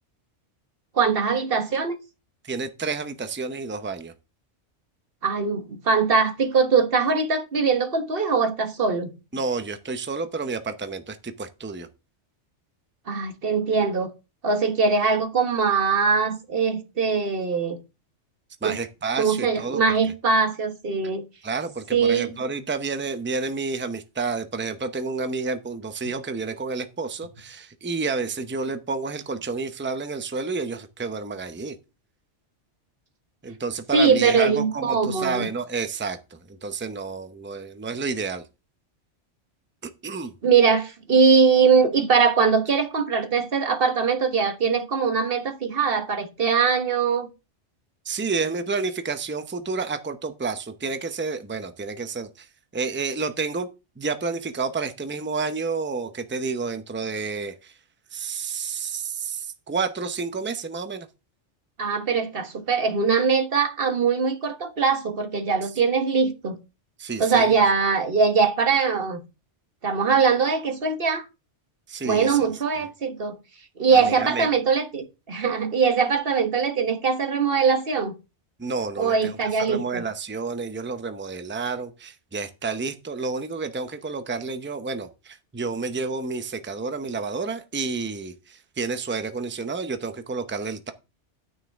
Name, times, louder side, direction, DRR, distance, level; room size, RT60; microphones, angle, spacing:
voice 1, 0.9-2.0 5.2-9.1 13.1-14.1 14.4-17.8 18.6-18.8 19.2-21.2 21.9-22.3 33.9-35.5 40.4-47.3 61.8-66.6 67.2-69.2 69.8-71.2 72.0-73.4 73.8-78.1 79.0-80.0, right 5 dB, 50° right, 1.5 m, -22 dB
voice 2, 2.4-4.1 9.3-11.9 18.6-19.8 21.4-31.8 33.4-38.5 39.8-40.3 48.0-52.5 52.7-53.7 54.0-57.7 58.1-61.1 67.0-67.6 71.9-72.4 73.9-74.5 78.6-90.9, right 4 dB, 10° right, 0.6 m, -30 dB
9.7 x 9.0 x 3.5 m
omnidirectional pair, 1.2 m